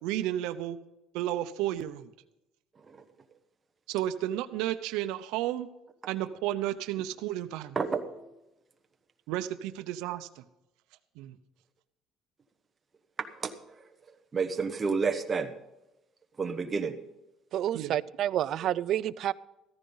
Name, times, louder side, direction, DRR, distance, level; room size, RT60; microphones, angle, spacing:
voice 1, 0.0-0.8 1.1-2.1 3.9-5.7 6.1-7.8 9.3-10.4 11.2-11.4 17.7-17.9, right 13 dB, 85° right, 11 dB, 0.7 m, -32 dB
voice 2, 7.7-8.3 13.2-13.8 14.3-15.5 16.4-17.0, right 5 dB, 15° right, 5 dB, 1.0 m, -31 dB
voice 3, 17.5-19.3, right 11 dB, 45° right, 16 dB, 0.4 m, -29 dB
14.0 x 14.0 x 3.9 m, 0.92 s
cardioid pair, 180°, 0 cm